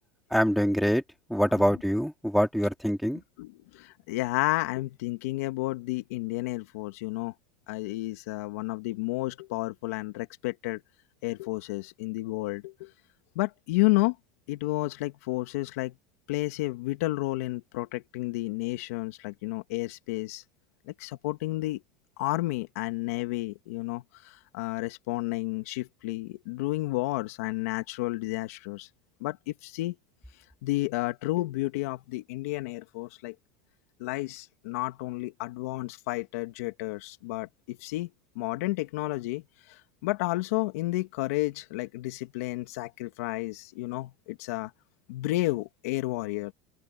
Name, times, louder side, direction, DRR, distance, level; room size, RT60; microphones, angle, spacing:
voice 1, 0.3-1.0 1.3-3.2, equal, ahead, 2.8 m, -24 dB
voice 2, 1.5-1.8 3.4-7.3 7.7-10.8 11.2-12.9 13.4-14.2 14.5-15.9 16.3-20.4 20.9-21.8 22.2-28.9 29.2-30.0 30.6-33.3 34.0-38.1 38.4-39.4 39.7-44.7 45.1-46.5, left 20 dB, 75° left, 2.3 m, -31 dB
supercardioid pair, 150°, 8 cm